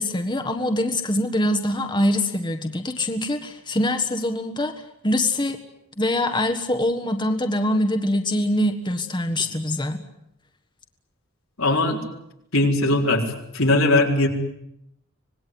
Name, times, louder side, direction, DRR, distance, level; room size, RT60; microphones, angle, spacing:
voice 1, 0.0-4.7 5.0-5.6 6.0-10.0, left 1 dB, 20° left, 6 dB, 1.5 m, -24 dB
voice 2, 11.6-12.0 12.5-13.2 13.5-14.3, left 2 dB, 85° left, 1 dB, 4.4 m, -19 dB
26.0 x 19.5 x 9.5 m, 0.81 s
head